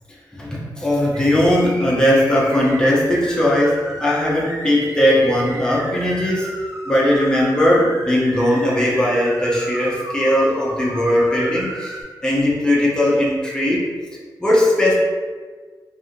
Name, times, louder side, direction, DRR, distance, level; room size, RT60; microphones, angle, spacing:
voice 1, 0.4-6.5 6.9-12.0 12.2-13.9 14.4-14.9, left 1 dB, 10° left, -6 dB, 0.6 m, -18 dB
sound 1, 1.1-12.0, right 1 dB, 40° right, 0.5 m, -34 dB
2.7 x 2.4 x 2.5 m, 1.5 s
wide cardioid pair, 115°, 8 cm